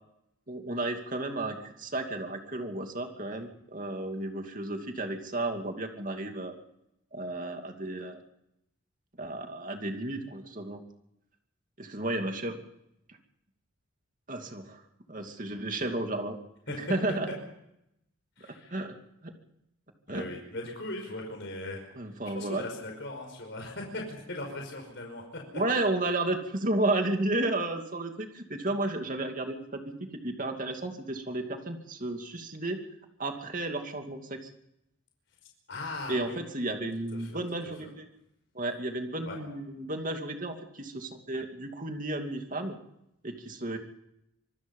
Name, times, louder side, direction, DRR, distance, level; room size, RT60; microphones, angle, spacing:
voice 1, 0.5-6.5 7.1-8.2 9.2-10.8 11.8-12.6 14.3-14.8 15.1-16.4 16.7-17.3 18.7-18.9 19.2-19.3 20.1-20.3 21.9-22.6 25.5-29.8 30.2-32.8 33.2-34.5 36.1-38.1 38.5-42.8 43.2-43.8, right 2 dB, 40° right, 4 dB, 2.6 m, -32 dB
voice 2, 18.4-18.8 20.1-21.8 22.3-25.4 35.7-36.4 37.2-37.4 39.3-39.4, left 2 dB, 55° left, 1 dB, 5.3 m, -39 dB
26.0 x 20.0 x 5.6 m, 0.82 s
head